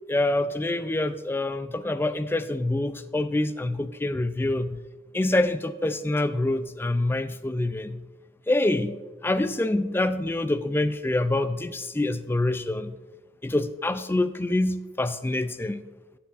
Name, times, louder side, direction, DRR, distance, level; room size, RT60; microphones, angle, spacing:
voice 1, 0.1-4.8 5.1-8.0 8.5-9.0 9.2-13.0 13.4-15.8, left 2 dB, 15° left, 0.3 m, -26 dB
13.0 x 8.7 x 2.5 m
head